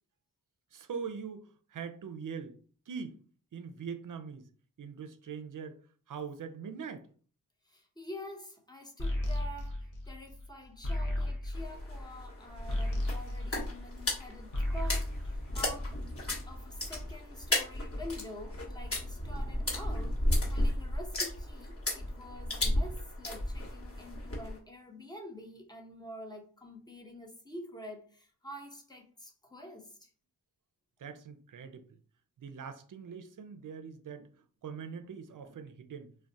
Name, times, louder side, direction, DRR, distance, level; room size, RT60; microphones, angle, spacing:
voice 1, 0.7-2.6 2.9-3.2 3.5-4.5 4.8-5.8 6.1-7.1 31.0-31.9 32.4-34.3 34.6-36.1, right 6 dB, 55° right, 0.5 m, -42 dB
voice 2, 7.6-16.0 16.5-30.1, left 1 dB, 10° left, 0.9 m, -47 dB
sound 1, 9.0-14.2 14.4-16.2, left 1 dB, 55° left, 0.8 m, -34 dB
sound 2, 11.5-24.6, left 1 dB, 35° left, 1.2 m, -34 dB
2.3 x 2.2 x 3.8 m
cardioid pair, 50°, 39 cm